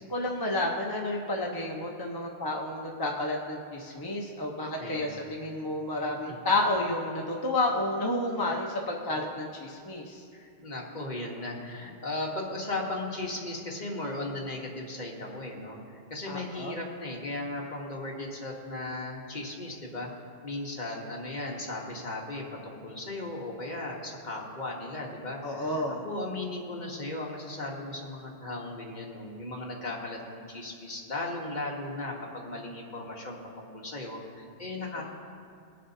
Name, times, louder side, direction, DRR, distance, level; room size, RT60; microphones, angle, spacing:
voice 1, 0.1-10.2 16.3-16.8 25.4-26.0, left 2 dB, 25° left, -2 dB, 0.8 m, -30 dB
voice 2, 4.8-5.2 6.3-6.5 10.3-20.1 20.4-35.0, left 2 dB, 45° left, -1 dB, 1.4 m, -37 dB
22.5 x 7.5 x 2.7 m, 2.2 s
omnidirectional pair, 1.1 m